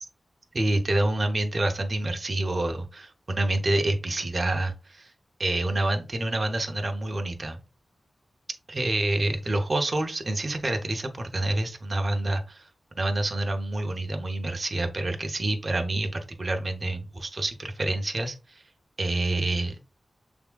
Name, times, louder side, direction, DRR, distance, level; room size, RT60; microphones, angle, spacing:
voice 1, 0.5-5.1 5.4-7.6 8.7-12.7 13.0-18.6 19.0-19.8, right 2 dB, 35° right, 5 dB, 0.7 m, -27 dB
6.7 x 3.5 x 2.2 m, 0.32 s
wide cardioid pair, 120°, 0 cm